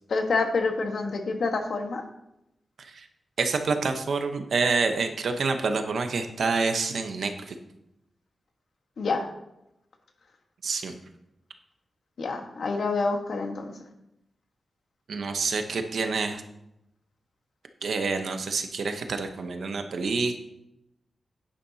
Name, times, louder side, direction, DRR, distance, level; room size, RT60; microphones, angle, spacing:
voice 1, 0.1-2.0 9.0-9.3 12.2-13.8, left 3 dB, 70° left, 4 dB, 1.4 m, -27 dB
voice 2, 3.4-7.5 10.6-10.9 15.1-16.4 17.8-20.4, right 4 dB, 75° right, 6 dB, 1.0 m, -27 dB
10.5 x 10.0 x 2.8 m, 0.84 s
wide cardioid pair, 105°, 0 cm